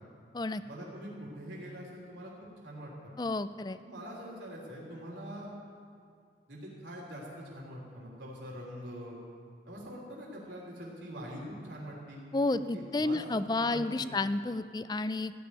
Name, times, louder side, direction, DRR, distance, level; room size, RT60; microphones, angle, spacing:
voice 1, 0.6-2.3 2.6-3.1 3.8-5.5 6.5-9.2 9.6-12.2 12.5-14.2, equal, 90° right, -3 dB, 3.4 m, -44 dB
voice 2, 3.2-3.8 12.3-15.3, left 2 dB, 25° left, 13 dB, 0.4 m, -31 dB
15.5 x 7.1 x 9.7 m, 2.2 s
head